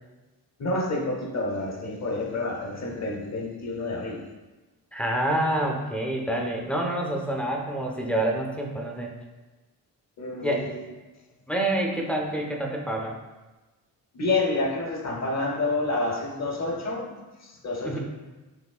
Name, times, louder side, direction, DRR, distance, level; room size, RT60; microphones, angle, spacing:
voice 1, 0.6-4.2 10.2-10.7 14.1-18.0, left 2 dB, 45° left, 1 dB, 0.8 m, -29 dB
voice 2, 4.9-9.1 10.4-10.7 11.5-13.2 17.8-18.0, right 1 dB, 5° left, 0 dB, 0.5 m, -27 dB
5.9 x 3.1 x 2.4 m, 1.2 s
cardioid pair, 120°, 38 cm